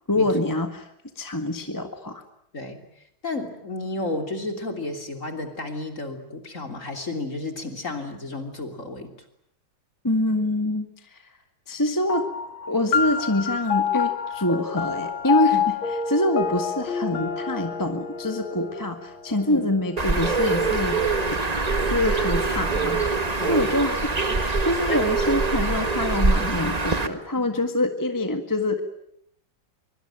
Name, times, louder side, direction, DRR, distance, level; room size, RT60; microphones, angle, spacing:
voice 1, 0.1-0.9 1.1-2.2 10.0-11.2 11.7-12.2 12.7-15.6 16.1-21.0 21.3-21.4 21.8-28.8, left 1 dB, 10° left, 6 dB, 1.6 m, -25 dB
voice 2, 3.2-9.1 15.5-15.6 19.5-19.6 23.4-23.7 24.3-24.4 24.9-25.0 27.5-27.6, left 2 dB, 40° left, 5 dB, 3.6 m, -32 dB
sound 1, 12.1-20.9, left 7 dB, 80° left, 2.8 m, -28 dB
Bird, 20.0-27.1, right 3 dB, 20° right, 1.5 m, -24 dB
24.5 x 24.0 x 9.1 m, 0.72 s
omnidirectional pair, 2.2 m